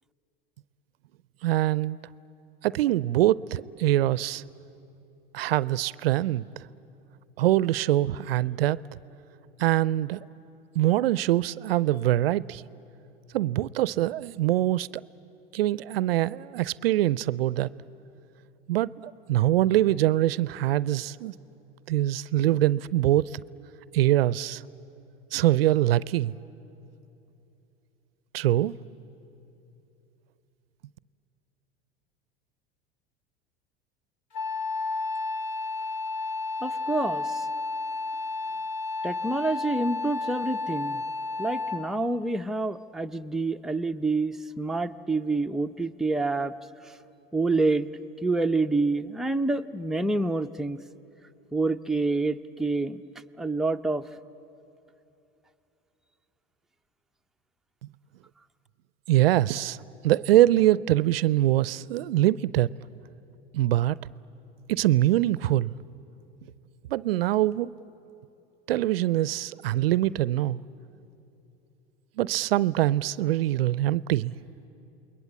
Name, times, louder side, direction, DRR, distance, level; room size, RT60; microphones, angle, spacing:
voice 1, 1.4-2.0 2.6-4.4 5.3-6.6 7.4-8.8 9.6-10.2 10.7-12.6 13.3-14.9 15.5-17.7 18.7-21.3 21.9-23.4 23.9-24.6 25.3-26.3 28.3-28.8 59.1-59.8 60.0-62.7 63.5-64.0 64.7-65.7 66.9-67.7 68.7-70.6 72.2-74.3, right 14 dB, 80° right, 0.5 m, -23 dB
Wind instrument woodwind instrument, 34.3-42.0, left 3 dB, 65° left, 2.1 m, -31 dB
voice 2, 36.6-37.5 39.0-41.0 41.4-46.5 47.3-47.9 48.2-50.8 51.5-53.0 53.4-54.1, right 3 dB, ahead, 0.6 m, -27 dB
28.5 x 21.5 x 8.6 m
hypercardioid pair, 85°, 29 cm